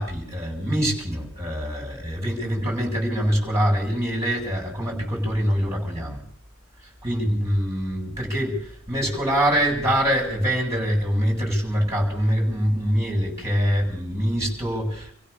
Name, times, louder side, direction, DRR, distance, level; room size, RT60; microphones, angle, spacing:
voice 1, 0.0-6.2 7.0-15.1, equal, 15° right, -1 dB, 7.7 m, -24 dB
27.5 x 15.5 x 7.0 m, 0.66 s
head